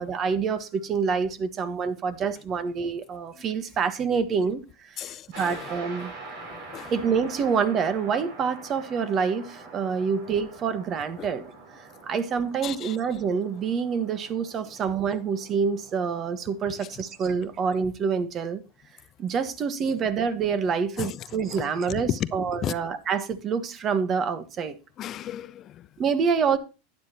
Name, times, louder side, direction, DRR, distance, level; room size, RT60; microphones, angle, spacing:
voice 1, 0.0-4.6 5.4-6.1 6.9-11.4 12.1-18.6 19.2-24.7 26.0-26.6, right 6 dB, 35° right, 1.4 m, -27 dB
voice 2, 5.0-6.1 6.4-6.9 10.0-10.1 11.2-11.3 12.6-13.0 16.8-17.0 21.0-21.3 21.6-22.8 25.0-25.9, left 11 dB, 40° left, 0.5 m, -35 dB
sound 1, 5.3-17.8, right 3 dB, 65° right, 5.9 m, -45 dB
12.0 x 9.5 x 2.9 m
hypercardioid pair, 105°, 0 cm